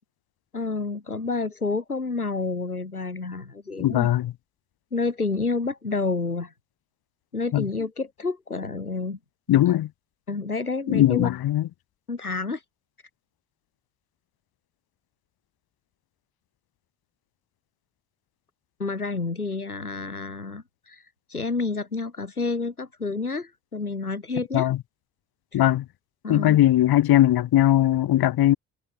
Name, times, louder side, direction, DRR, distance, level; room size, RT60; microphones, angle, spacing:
voice 1, 0.5-4.1 4.9-6.5 7.3-9.2 10.3-11.3 12.1-12.6 18.8-21.0 21.3-24.7 25.5-25.7 26.2-26.6, left 3 dB, 85° left, 4.0 m, -29 dB
voice 2, 3.8-4.3 7.5-7.6 9.5-9.9 10.9-11.6 24.5-24.8 25.5-25.8 26.3-28.6, left 13 dB, 55° left, 6.3 m, -19 dB
figure-of-eight pair, 45°, 43 cm